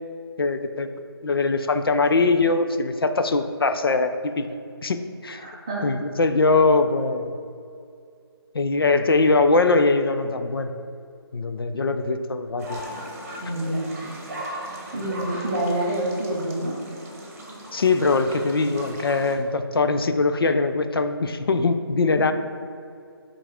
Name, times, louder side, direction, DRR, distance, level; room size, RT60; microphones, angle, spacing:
voice 1, 0.4-0.9 1.2-4.5 4.8-5.4 5.8-7.4 8.5-10.7 11.3-12.8 17.7-22.3, left 3 dB, 60° left, 9 dB, 0.4 m, -22 dB
voice 2, 5.4-5.9 13.4-13.9 14.9-16.8, right 1 dB, 10° right, -5 dB, 0.5 m, -27 dB
sound 1, 12.6-19.3, right 1 dB, 35° right, 1.0 m, -37 dB
8.7 x 3.8 x 3.4 m, 2.4 s
hypercardioid pair, 175°, 14 cm